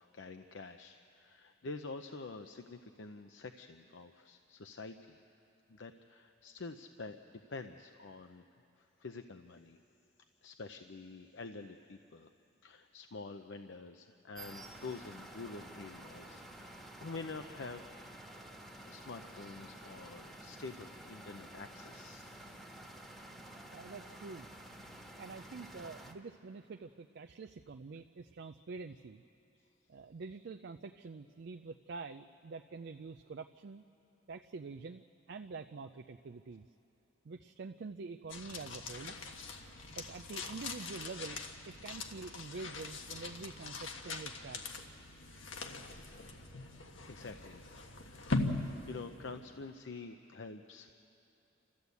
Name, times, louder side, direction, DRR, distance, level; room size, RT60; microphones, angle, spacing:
voice 1, 0.0-5.2 5.7-7.2 7.5-8.4 8.8-9.8 10.4-12.3 12.6-17.9 18.8-22.3 47.1-48.2 48.9-50.9, left 3 dB, 70° left, 7 dB, 0.6 m, -47 dB
sound 1, 14.3-26.1, right 1 dB, ahead, 1.4 m, -51 dB
voice 2, 23.7-24.5 25.2-29.2 29.9-33.8 34.3-36.7 37.2-39.2 40.0-41.4 41.6-44.6, right 4 dB, 60° right, 7 dB, 0.4 m, -46 dB
sound 2, 38.3-49.7, left 3 dB, 85° left, 1.4 m, -41 dB
29.0 x 13.5 x 8.2 m, 2.8 s
head